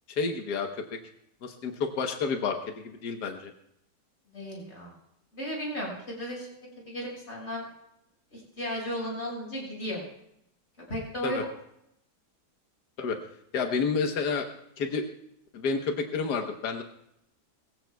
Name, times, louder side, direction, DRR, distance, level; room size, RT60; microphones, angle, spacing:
voice 1, 0.2-1.0 1.4-3.5 11.2-11.4 13.0-13.2 13.5-14.5 14.8-15.0 15.5-16.8, left 5 dB, 75° left, 4 dB, 1.7 m, -30 dB
voice 2, 4.3-4.9 5.3-7.7 8.3-10.0 10.9-11.4, equal, 40° left, -3 dB, 6.3 m, -35 dB
22.0 x 15.5 x 2.3 m, 0.76 s
omnidirectional pair, 1.8 m